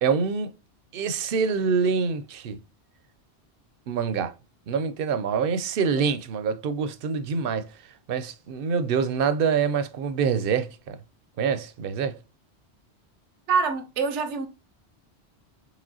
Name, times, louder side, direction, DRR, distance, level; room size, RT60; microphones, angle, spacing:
voice 1, 0.0-0.5 0.9-2.6 3.9-4.3 4.7-7.7 8.1-11.0 11.4-12.2, right 6 dB, 60° right, 0.7 m, -25 dB
voice 2, 13.5-14.5, right 5 dB, 90° right, 1.0 m, -25 dB
5.0 x 3.3 x 2.6 m
omnidirectional pair, 1.2 m